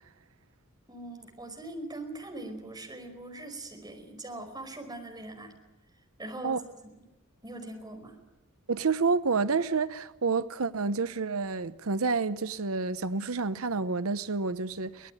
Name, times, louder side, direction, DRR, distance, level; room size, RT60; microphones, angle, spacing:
voice 1, 0.9-5.6 6.2-6.9 7.4-8.2, right 2 dB, 20° right, 5.1 m, -41 dB
voice 2, 8.7-15.1, right 4 dB, 90° right, 0.9 m, -29 dB
24.0 x 19.5 x 9.4 m
head